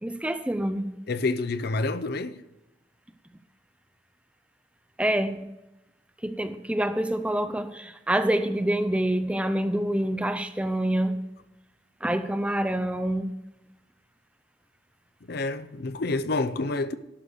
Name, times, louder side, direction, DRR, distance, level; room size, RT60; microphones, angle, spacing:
voice 1, 0.0-0.9 5.0-5.5 6.2-11.3 12.0-13.3, right 1 dB, 5° right, 0.4 m, -26 dB
voice 2, 1.1-2.4 15.3-16.9, left 3 dB, 50° left, 0.5 m, -28 dB
11.5 x 6.6 x 6.4 m
head